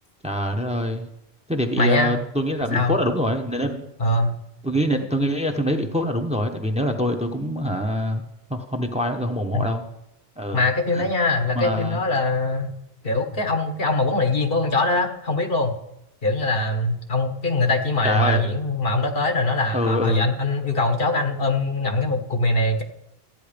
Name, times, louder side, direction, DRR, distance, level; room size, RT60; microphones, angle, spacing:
voice 1, 0.2-1.1 1.5-3.8 4.6-8.2 8.5-9.8 10.4-10.6 10.9-11.1 11.5-12.0 18.0-18.4 19.7-20.3, equal, 5° right, 4 dB, 1.0 m, -24 dB
voice 2, 1.8-2.2 2.7-3.0 4.0-4.3 9.5-9.7 10.5-12.7 13.0-15.7 16.2-22.8, left 2 dB, 65° left, 5 dB, 1.6 m, -22 dB
14.0 x 9.4 x 5.1 m, 0.83 s
omnidirectional pair, 1.0 m